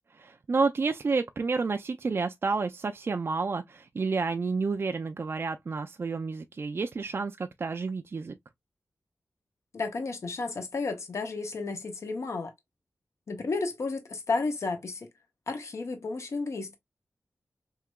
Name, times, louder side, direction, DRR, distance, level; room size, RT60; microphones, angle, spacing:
voice 1, 0.1-8.4, right 4 dB, 50° right, 0.4 m, -30 dB
voice 2, 9.7-12.5 13.3-15.1 15.5-16.8, left 3 dB, 75° left, 1.0 m, -32 dB
4.7 x 2.8 x 2.2 m
wide cardioid pair, 115°, 5 cm